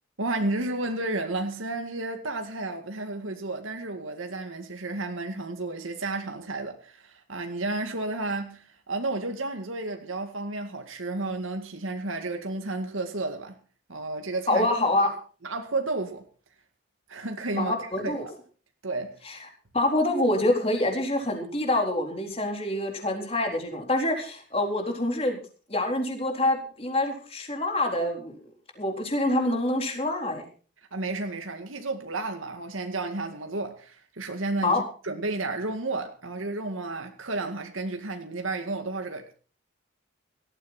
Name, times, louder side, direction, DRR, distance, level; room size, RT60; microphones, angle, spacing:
voice 1, 0.2-13.6 13.9-14.7 15.4-16.2 17.1-18.3 18.8-19.2 30.9-39.4, right 2 dB, 90° right, 2.1 m, -32 dB
voice 2, 14.5-15.1 17.5-18.3 19.3-19.4 19.7-25.4 25.7-28.4 28.8-30.4 34.6-34.8, left 1 dB, 30° left, 4.0 m, -26 dB
18.0 x 14.0 x 4.3 m
head